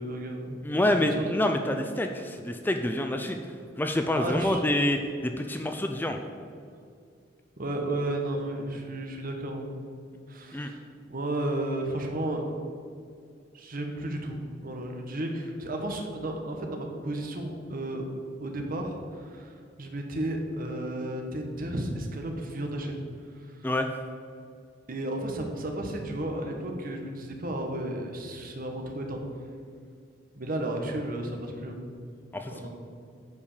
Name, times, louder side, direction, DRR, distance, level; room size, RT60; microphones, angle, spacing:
voice 1, 0.0-0.6 0.9-1.3 4.1-4.6 7.6-9.8 10.3-12.4 13.5-18.1 18.4-23.0 24.9-29.2 30.4-31.8 32.5-32.7, right 1 dB, 50° right, 3 dB, 1.2 m, -33 dB
voice 2, 0.6-3.4 3.8-6.2 10.5-10.7 23.6-23.9 32.3-32.7, left 1 dB, 10° left, 5 dB, 0.4 m, -27 dB
8.4 x 5.1 x 6.7 m, 2.3 s
head